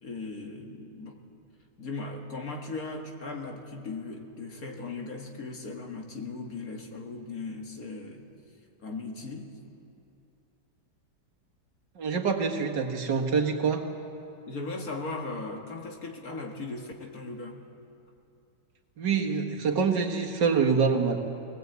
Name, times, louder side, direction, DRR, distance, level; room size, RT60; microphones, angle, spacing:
voice 1, 0.0-1.2 1.8-8.2 8.8-9.5 14.5-17.6, left 3 dB, 55° left, 2 dB, 2.2 m, -38 dB
voice 2, 12.0-13.8 19.0-21.3, right 5 dB, 80° right, 1 dB, 2.3 m, -26 dB
21.0 x 19.0 x 8.2 m, 2.6 s
omnidirectional pair, 1.9 m